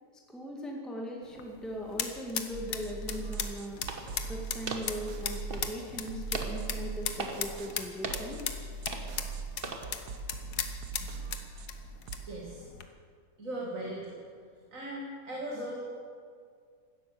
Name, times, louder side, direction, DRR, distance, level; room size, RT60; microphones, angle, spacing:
voice 1, 0.3-3.8 4.2-8.4, equal, ahead, -1 dB, 1.8 m, -39 dB
sound 1, 1.2-12.9, left 8 dB, 75° left, 1.6 m, -39 dB
sound 2, 2.5-12.2, right 5 dB, 80° right, 1.6 m, -41 dB
sound 3, 3.4-9.9, right 3 dB, 35° right, 1.4 m, -42 dB
voice 2, 12.2-12.6 13.4-14.2 14.7-15.8, right 1 dB, 55° right, -3 dB, 2.5 m, -38 dB
16.5 x 12.5 x 6.9 m, 2.1 s
omnidirectional pair, 1.7 m